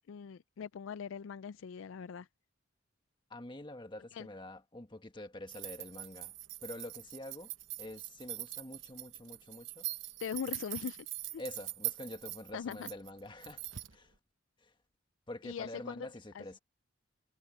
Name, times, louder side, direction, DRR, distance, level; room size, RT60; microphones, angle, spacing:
voice 1, 0.0-2.3 4.1-4.3 10.2-11.0 11.3-11.4 12.5-12.9 15.4-15.9 16.3-16.4, left 7 dB, 75° left, 0.4 m, -41 dB
voice 2, 3.3-6.3 6.6-7.5 7.8-9.9 11.4-14.1 14.6-14.7 15.3-16.6, left 1 dB, 25° left, 1.5 m, -46 dB
sound 1, 5.5-14.0, right 15 dB, 70° right, 1.1 m, -43 dB
head